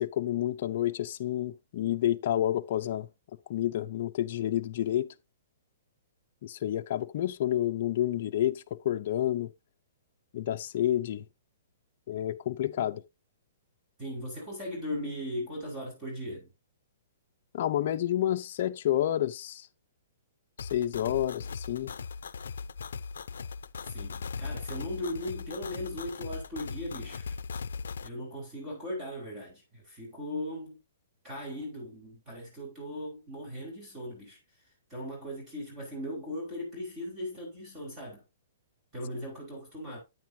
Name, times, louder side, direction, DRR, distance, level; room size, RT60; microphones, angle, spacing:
voice 1, 0.0-3.1 3.5-5.1 6.4-9.5 10.3-11.2 12.1-13.0 17.5-19.7 20.6-21.9, left 12 dB, 45° left, 0.7 m, -29 dB
voice 2, 14.0-16.5 23.9-27.3 28.0-30.8 31.2-34.4 34.9-38.2 38.9-40.0, left 1 dB, 20° right, 5.2 m, -38 dB
sound 1, 20.6-28.1, left 5 dB, 85° left, 0.6 m, -39 dB
9.4 x 9.3 x 2.8 m
hypercardioid pair, 160°, 0 cm